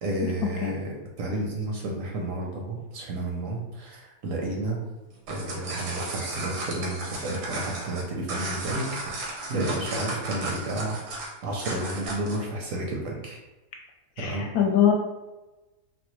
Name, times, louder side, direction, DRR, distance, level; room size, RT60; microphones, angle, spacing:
voice 1, 0.0-4.8 5.3-11.0 11.4-13.4 14.2-14.5, right 1 dB, 70° right, -1 dB, 0.9 m, -31 dB
sound 1, 5.1-12.4, right 2 dB, 85° right, 1.4 m, -34 dB
voice 2, 14.2-14.9, left 9 dB, 70° left, 1 dB, 1.0 m, -22 dB
4.0 x 2.1 x 3.0 m, 1.1 s
omnidirectional pair, 1.7 m